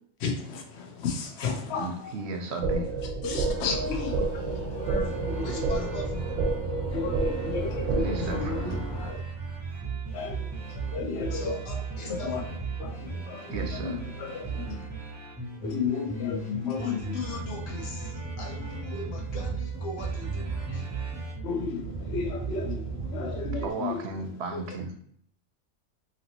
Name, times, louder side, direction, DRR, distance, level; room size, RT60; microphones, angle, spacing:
voice 1, 0.2-2.2 3.2-5.7 6.9-9.2 10.1-11.6 12.1-12.4 12.8-14.9 15.6-17.1 21.4-24.0 24.5-24.6, left 5 dB, 65° left, 0.9 m, -33 dB
voice 2, 1.8-3.0 7.9-8.8 13.5-14.0 23.6-24.9, right 3 dB, 65° right, 0.8 m, -34 dB
sound 1, 2.6-8.6, right 4 dB, 85° right, 1.0 m, -30 dB
sound 2, 3.3-9.1, left 1 dB, 30° left, 0.5 m, -37 dB
sound 3, 4.8-23.7, right 4 dB, 20° right, 0.5 m, -36 dB
voice 3, 5.4-6.4 11.3-12.6 16.7-20.9, left 3 dB, 80° left, 1.1 m, -40 dB
3.0 x 2.8 x 2.8 m
omnidirectional pair, 1.3 m